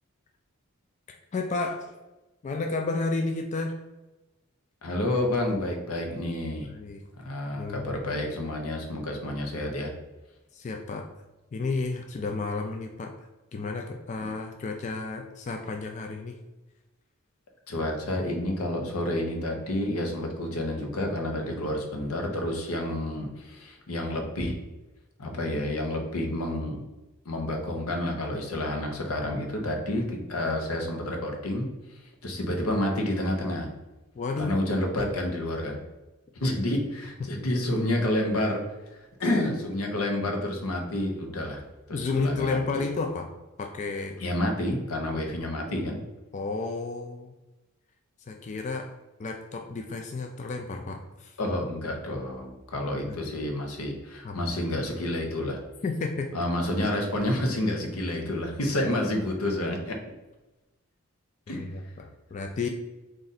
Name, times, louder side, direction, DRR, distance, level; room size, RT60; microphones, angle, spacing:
voice 1, 1.1-2.0 2.4-3.8 6.6-7.0 7.5-7.9 10.5-11.1 11.5-13.2 13.5-16.4 34.2-34.6 41.9-43.3 43.6-44.2 46.3-47.3 48.3-48.9 49.2-51.4 53.0-53.2 54.2-54.5 55.8-56.3 61.5-62.7, left 3 dB, 35° left, 3 dB, 0.3 m, -32 dB
voice 2, 4.8-6.7 7.2-9.9 17.7-24.5 25.2-26.8 27.3-33.7 34.4-35.8 36.3-38.6 38.9-42.9 44.2-46.0 51.4-55.6 56.3-60.0 61.5-61.6, left 1 dB, 90° left, 3 dB, 0.8 m, -29 dB
3.8 x 2.5 x 4.0 m, 1.1 s
head